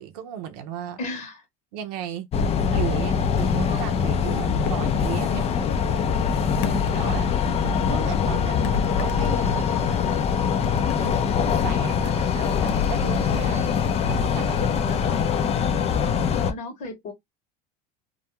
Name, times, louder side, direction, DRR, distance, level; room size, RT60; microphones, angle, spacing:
voice 1, 0.0-1.0 1.7-2.3 2.7-5.6 6.6-7.3 7.9-10.2 10.9-13.7 14.0-15.0, right 9 dB, 80° right, 0.6 m, -36 dB
voice 2, 1.0-1.4 6.9-7.3 14.8-15.3 16.4-17.1, left 3 dB, 50° left, 1.0 m, -37 dB
sound 1, 2.3-16.5, left 6 dB, 30° left, 0.5 m, -23 dB
sound 2, 3.6-6.5 7.0-9.8, right 1 dB, 25° right, 0.9 m, -45 dB
sound 3, 4.6-5.1 6.6-7.6 8.6-9.9 10.6-12.0 12.7-14.6, left 8 dB, 90° left, 0.5 m, -33 dB
2.3 x 2.2 x 2.8 m
supercardioid pair, 105°, 20 cm